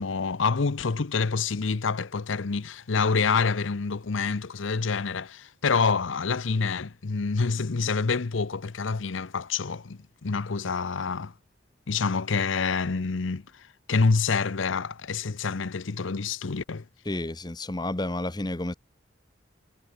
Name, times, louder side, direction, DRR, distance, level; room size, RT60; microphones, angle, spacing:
voice 1, 0.0-11.3 11.9-16.8, left 4 dB, 80° left, 0.7 m, -27 dB
voice 2, 17.0-18.7, left 1 dB, 20° left, 0.9 m, -31 dB
head